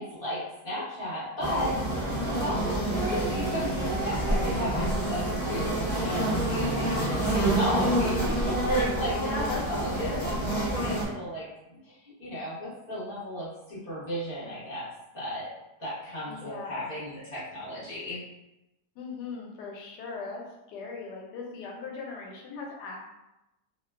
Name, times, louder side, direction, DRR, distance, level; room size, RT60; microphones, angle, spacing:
voice 1, 0.0-1.8 2.2-9.3 9.8-11.5 11.8-14.9 15.1-15.4 15.8-18.2, equal, 40° left, -10 dB, 1.1 m, -34 dB
sound 1, 1.4-11.0, right 1 dB, 55° left, 0.4 m, -28 dB
voice 2, 9.2-9.7 10.0-10.5 16.3-16.8 19.0-20.4 20.7-23.0, left 4 dB, 85° left, -1 dB, 1.2 m, -37 dB
2.9 x 2.2 x 2.2 m, 0.93 s
omnidirectional pair, 1.7 m